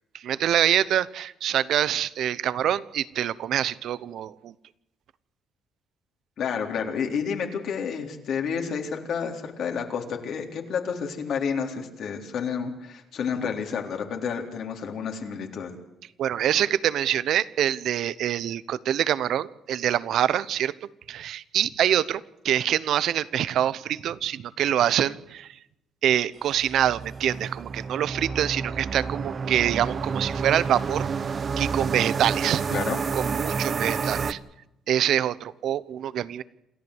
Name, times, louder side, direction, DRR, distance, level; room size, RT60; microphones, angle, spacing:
voice 1, 0.1-4.5 16.2-20.7 21.1-25.6 26.0-31.1 31.6-32.6 33.1-34.4 34.9-36.4, right 10 dB, 70° right, 18 dB, 0.9 m, -25 dB
voice 2, 6.4-15.7 32.7-33.0 34.2-34.3, left 6 dB, 65° left, 3 dB, 3.8 m, -30 dB
sound 1, 26.5-34.3, right 5 dB, 40° right, 1.0 m, -29 dB
28.0 x 14.0 x 8.1 m, 0.88 s
cardioid pair, 120°, 0 cm